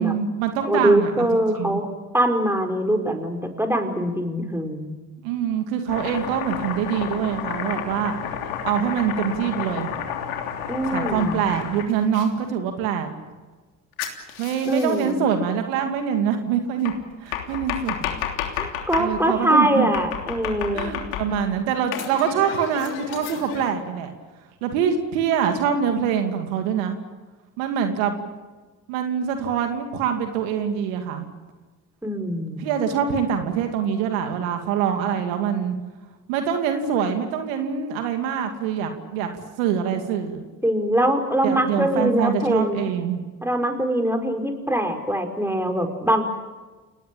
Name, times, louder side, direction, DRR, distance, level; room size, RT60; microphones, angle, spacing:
voice 1, 0.0-1.3 1.6-1.8 5.2-8.1 8.6-9.9 10.8-13.1 14.4-16.9 17.2-18.0 18.6-18.7 19.0-19.9 20.7-24.1 24.6-27.0 27.6-28.2 28.9-31.3 32.6-35.7 36.3-39.3 39.6-40.4 41.4-43.2, right 7 dB, 80° right, 5 dB, 2.6 m, -24 dB
voice 2, 0.7-1.9 2.1-5.0 10.7-11.4 14.7-15.3 18.6-20.9 32.0-32.7 40.6-42.9 43.4-46.2, right 1 dB, 5° right, 5 dB, 5.2 m, -23 dB
Domestic sounds home sounds, 5.9-12.3 14.0-15.1 16.8-19.1 19.9-21.5 21.9-23.7, left 9 dB, 80° left, 3.3 m, -31 dB
29.5 x 19.0 x 8.6 m, 1.3 s
hypercardioid pair, 55°, 40 cm